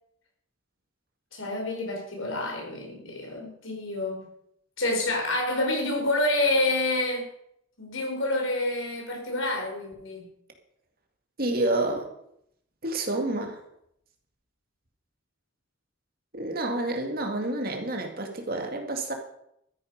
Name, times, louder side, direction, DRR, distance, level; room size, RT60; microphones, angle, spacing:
voice 1, 1.3-4.3 4.8-7.3 7.8-10.3, left 2 dB, 85° left, 2 dB, 4.1 m, -28 dB
voice 2, 11.4-12.1 12.8-13.6 16.3-19.1, right 2 dB, 45° right, 4 dB, 2.2 m, -29 dB
13.0 x 9.7 x 5.3 m, 0.75 s
head